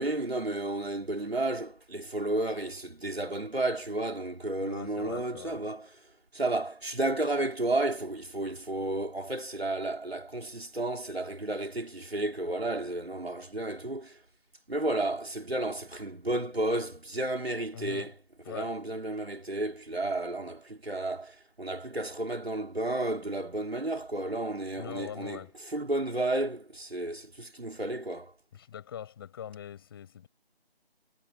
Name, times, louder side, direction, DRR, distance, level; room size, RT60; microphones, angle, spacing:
voice 1, 0.0-5.9 6.3-14.2 14.7-18.1 18.5-28.4, right 2 dB, 80° right, 4.5 m, -32 dB
voice 2, 4.6-5.6 17.7-18.1 18.4-18.8 24.8-25.5 28.5-30.3, left 9 dB, 25° left, 7.2 m, -42 dB
figure-of-eight pair, 160°, 31 cm